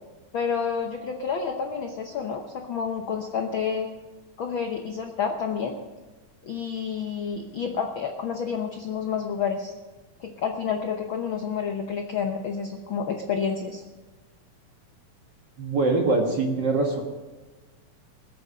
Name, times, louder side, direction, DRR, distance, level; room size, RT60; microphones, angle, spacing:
voice 1, 0.3-3.9 4.4-5.8 6.4-9.7 10.2-13.8, left 6 dB, 85° left, 4 dB, 1.1 m, -29 dB
voice 2, 15.6-17.0, right 3 dB, 45° right, 1 dB, 1.6 m, -23 dB
21.0 x 8.4 x 6.3 m, 1.2 s
omnidirectional pair, 3.7 m